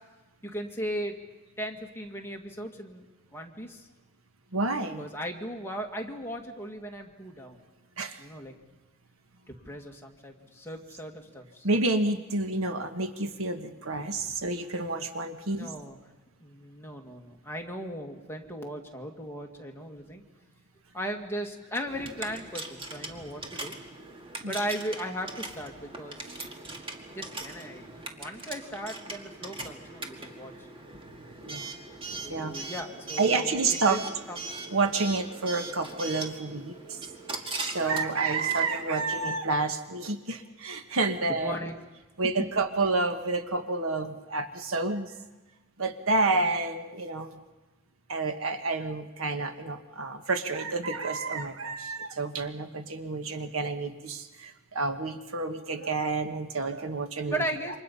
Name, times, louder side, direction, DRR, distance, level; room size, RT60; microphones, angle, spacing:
voice 1, 0.4-1.2 1.6-3.0 3.3-3.9 5.0-7.6 8.2-8.5 9.5-11.7 15.5-16.0 16.4-20.2 20.9-23.8 24.5-26.4 27.1-30.5 32.1-34.0 34.3-34.5 38.1-38.3 41.4-41.8 57.3-57.8, equal, 10° left, 1 dB, 2.2 m, -37 dB
voice 2, 4.5-5.1 8.0-8.2 11.6-15.7 24.4-24.5 31.4-31.7 32.3-32.7 33.2-34.0 34.7-37.0 37.6-41.6 42.2-45.1 45.8-47.4 48.1-57.4, right 3 dB, 70° right, 8 dB, 1.4 m, -29 dB
Coin (dropping) / Alarm, 21.9-39.4, right 3 dB, 25° right, 2.0 m, -40 dB
28.5 x 25.5 x 5.6 m, 1.1 s
head